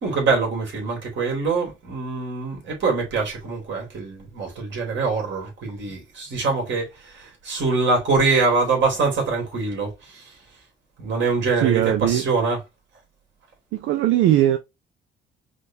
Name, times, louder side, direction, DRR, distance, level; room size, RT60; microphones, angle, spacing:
voice 1, 0.0-10.3 11.0-12.6, right 4 dB, 65° right, 2.5 m, -24 dB
voice 2, 11.6-12.2 13.7-14.6, right 13 dB, 85° right, 0.5 m, -19 dB
5.1 x 2.4 x 2.7 m
cardioid pair, 90°, 20 cm